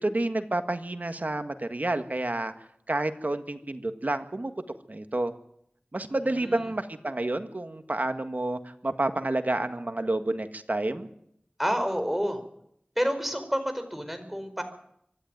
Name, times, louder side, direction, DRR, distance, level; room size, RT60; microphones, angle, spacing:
voice 1, 0.0-2.5 2.9-4.5 4.9-5.3 5.9-11.1, right 2 dB, 60° right, 8 dB, 1.7 m, -29 dB
voice 2, 6.3-6.6 11.6-12.4 13.0-14.6, equal, 5° right, 7 dB, 4.6 m, -29 dB
25.0 x 12.0 x 9.4 m, 0.73 s
wide cardioid pair, 45°, 3 cm